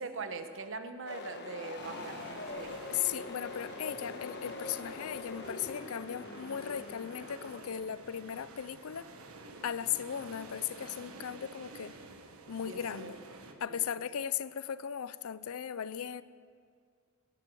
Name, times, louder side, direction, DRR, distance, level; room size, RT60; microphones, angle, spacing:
voice 1, 0.0-2.8 12.6-13.2 13.4-13.8, right 3 dB, 60° right, 1.1 m, -42 dB
sound 1, 1.1-9.7, left 3 dB, 50° left, 1.2 m, -44 dB
sound 2, 1.8-13.5, right 2 dB, 85° right, 1.4 m, -51 dB
voice 2, 2.9-9.1 9.6-12.0 12.5-13.2 13.6-16.2, left 9 dB, 80° left, 0.5 m, -37 dB
18.5 x 12.0 x 6.1 m
head